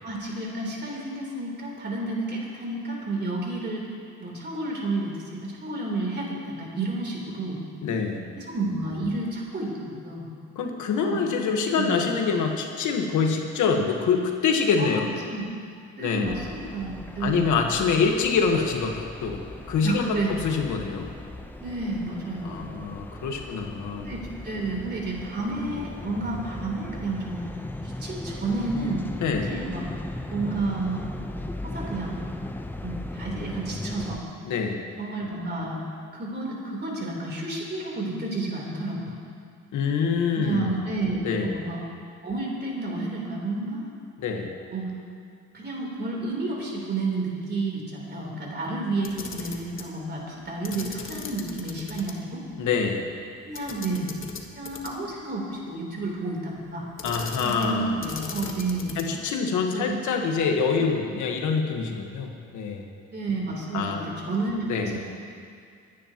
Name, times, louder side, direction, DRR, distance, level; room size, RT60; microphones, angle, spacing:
voice 1, 0.0-3.9 4.2-7.6 8.4-10.3 11.0-11.2 11.7-12.1 14.8-15.5 16.0-17.7 19.8-20.4 21.6-22.7 24.1-27.5 27.8-29.0 29.4-29.9 30.3-31.1 31.6-32.2 32.8-34.2 35.0-35.8 36.1-39.1 40.4-41.8 42.2-43.9 44.7-44.9 45.5-52.4 53.4-54.1 54.5-56.9 57.4-59.1 59.7-60.0 60.8-61.2 63.1-65.0, right 2 dB, 35° right, -2 dB, 3.6 m, -31 dB
voice 2, 7.8-8.3 10.6-15.1 16.0-16.3 17.2-19.4 19.7-20.1 20.4-21.1 22.4-24.1 29.2-29.5 34.5-34.9 39.7-40.8 41.2-41.5 44.2-44.5 52.6-53.1 57.0-58.0 59.0-62.9 63.7-64.0 64.7-65.0, left 5 dB, 80° left, 3 dB, 1.4 m, -25 dB
sound 1, 16.2-34.2, left 1 dB, 5° left, 0.8 m, -37 dB
Camera, 49.0-49.9 50.6-52.1 52.5-52.6 53.5-55.1 57.0-57.7 58.0-59.2, left 5 dB, 45° left, 1.4 m, -38 dB
25.5 x 10.0 x 3.0 m, 2.3 s
cardioid pair, 90°, 30 cm